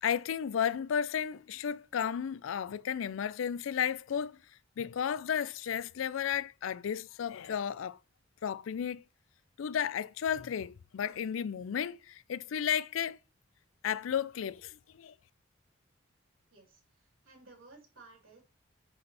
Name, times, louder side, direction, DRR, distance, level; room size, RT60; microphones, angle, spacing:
voice 1, 0.0-4.4 4.8-8.0 8.4-9.0 9.6-13.2 13.8-15.1, left 8 dB, 80° left, 0.4 m, -33 dB
voice 2, 16.5-18.4, right 3 dB, 90° right, 3.6 m, -57 dB
11.0 x 4.2 x 3.4 m
head